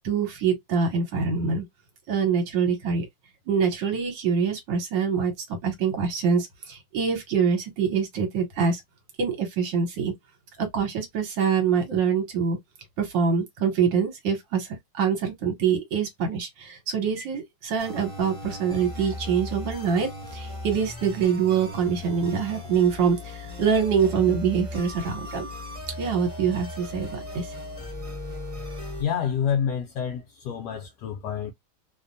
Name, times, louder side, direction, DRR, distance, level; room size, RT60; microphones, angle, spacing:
voice 1, 0.0-1.6 2.1-3.1 3.5-5.3 5.6-8.8 9.2-10.1 10.6-12.6 13.0-14.7 14.9-25.5 25.9-27.5, right 6 dB, 70° right, 1.5 m, -25 dB
sound 1, 17.8-29.0, left 1 dB, 20° right, 0.9 m, -37 dB
voice 2, 29.0-31.5, left 8 dB, 70° left, 1.0 m, -28 dB
3.2 x 2.1 x 2.5 m
omnidirectional pair, 2.2 m